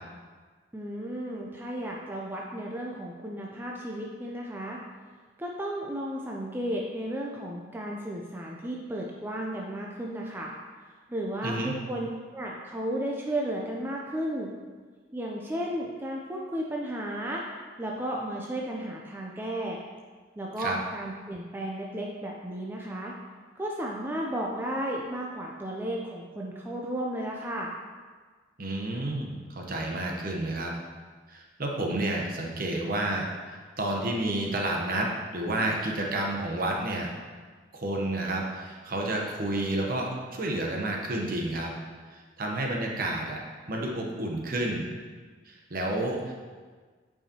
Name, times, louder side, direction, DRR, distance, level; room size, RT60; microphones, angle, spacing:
voice 1, 0.7-4.8 5.4-10.5 11.1-14.5 15.1-17.5 17.8-19.8 20.4-23.1 23.6-27.7, right 1 dB, 10° right, -2 dB, 0.4 m, -34 dB
voice 2, 11.4-11.7 20.6-20.8 28.6-30.7 31.3-37.1 37.7-41.7 42.1-43.4 43.7-44.9 45.4-46.4, right 1 dB, 50° right, 0 dB, 0.9 m, -30 dB
8.0 x 4.8 x 2.9 m, 1.5 s
head